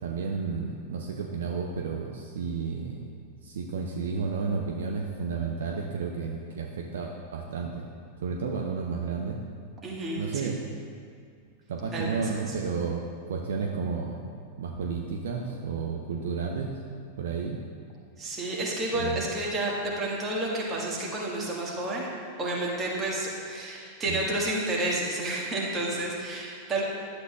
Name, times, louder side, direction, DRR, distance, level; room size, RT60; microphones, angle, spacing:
voice 1, 0.0-3.1 3.4-7.9 8.2-9.4 10.1-10.6 11.7-16.7 17.2-17.6 18.9-19.2 24.0-24.2, right 5 dB, 60° right, 1 dB, 0.6 m, -32 dB
voice 2, 9.8-10.5 11.9-12.5 18.2-22.1 22.4-26.8, right 1 dB, 20° right, -4 dB, 1.7 m, -30 dB
11.5 x 7.8 x 2.4 m, 2.2 s
figure-of-eight pair, 90°, 0 cm